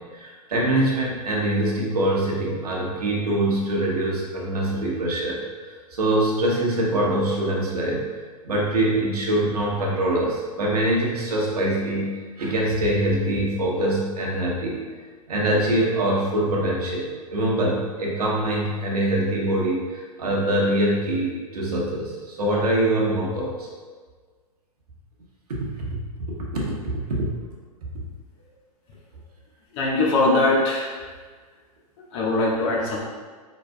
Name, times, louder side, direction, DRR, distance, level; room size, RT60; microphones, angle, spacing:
voice 1, 0.0-5.4 5.9-8.0 8.4-12.1 12.4-14.9 15.3-23.7 25.5-26.0 26.5-27.3, right 1 dB, 75° right, -3 dB, 1.3 m, -24 dB
voice 2, 29.7-31.0 32.1-33.0, left 2 dB, 50° left, -3 dB, 1.3 m, -21 dB
5.1 x 4.1 x 2.2 m, 1.5 s
hypercardioid pair, 115°, 20 cm